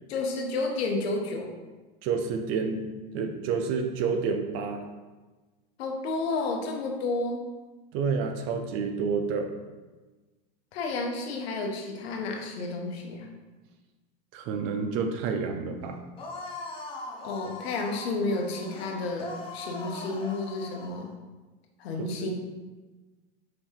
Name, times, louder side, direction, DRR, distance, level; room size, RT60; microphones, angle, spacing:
voice 1, 0.1-1.5 5.8-7.4 10.7-13.3 17.2-21.1 21.8-22.3, left 3 dB, 85° left, 2 dB, 0.9 m, -31 dB
voice 2, 2.0-2.9 3.1-4.8 7.9-9.5 14.3-16.0 22.0-22.3, right 5 dB, 45° right, 6 dB, 0.5 m, -29 dB
sound 1, 16.2-21.1, left 2 dB, 20° left, 0.5 m, -41 dB
4.8 x 2.7 x 3.5 m, 1.2 s
supercardioid pair, 135°, 31 cm